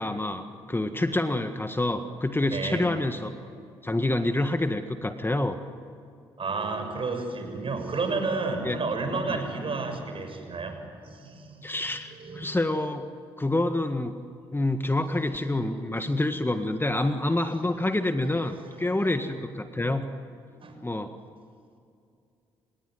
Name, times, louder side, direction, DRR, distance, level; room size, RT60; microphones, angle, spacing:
voice 1, 0.0-3.3 3.8-5.6 8.6-8.8 9.3-9.4 11.6-13.1 13.4-14.2 14.5-20.0 20.8-21.1, left 2 dB, 20° left, 8 dB, 1.7 m, -27 dB
voice 2, 2.5-2.9 3.4-3.5 6.4-12.4 15.0-15.2 15.5-16.1 16.9-17.1 17.8-19.2 20.5-20.8, right 3 dB, 50° right, 5 dB, 6.6 m, -33 dB
30.0 x 17.5 x 9.5 m, 2.4 s
hypercardioid pair, 45°, 12 cm